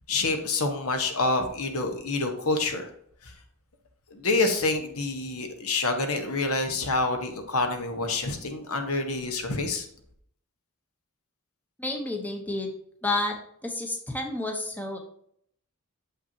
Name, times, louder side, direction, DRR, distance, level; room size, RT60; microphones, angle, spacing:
voice 1, 0.1-2.9 3.2-3.3 4.1-9.9, left 3 dB, 70° left, 5 dB, 1.1 m, -27 dB
voice 2, 11.8-12.7 13.0-13.3 13.6-15.0, left 2 dB, 10° left, 2 dB, 0.8 m, -30 dB
7.4 x 5.6 x 2.8 m, 0.68 s
head